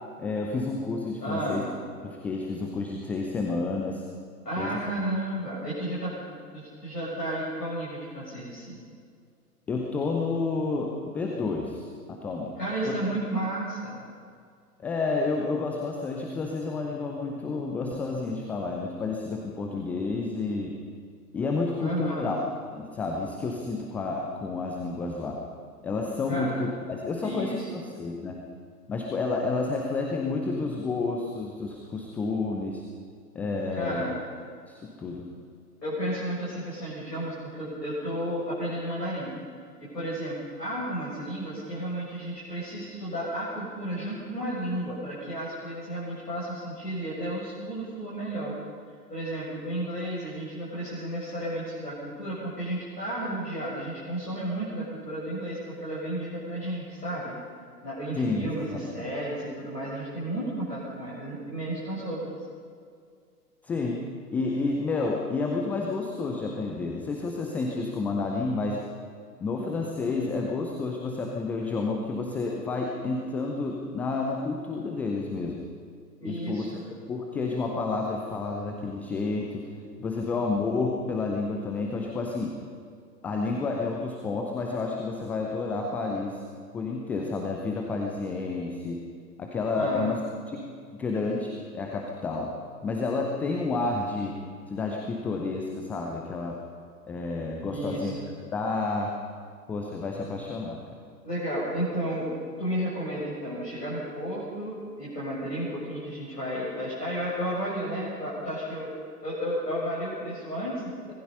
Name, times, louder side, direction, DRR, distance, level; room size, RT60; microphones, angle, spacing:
voice 1, 0.2-1.6 2.0-4.0 4.6-4.8 9.7-12.6 12.9-13.2 14.8-20.8 21.3-22.4 22.7-25.4 25.8-28.4 28.9-32.8 33.3-34.0 34.7-35.3 58.1-58.9 63.6-64.0 64.3-68.8 69.4-75.6 76.2-79.6 80.0-82.5 83.2-86.4 86.7-89.0 89.4-90.2 90.5-90.7 91.0-92.5 92.8-94.4 94.7-96.6 97.1-99.1 99.7-100.8, left 3 dB, 5° left, 1 dB, 0.4 m, -30 dB
voice 2, 1.2-1.7 4.5-8.8 12.6-14.0 21.8-22.4 26.3-26.5 27.2-27.8 33.7-34.2 35.8-39.4 39.8-48.5 49.1-57.4 57.8-62.3 76.2-76.9 89.8-90.2 97.7-98.2 101.2-102.3 102.6-108.9 109.2-111.1, right 1 dB, 80° left, -7 dB, 7.0 m, -32 dB
25.0 x 19.5 x 5.6 m, 2.2 s
figure-of-eight pair, 105°, 48 cm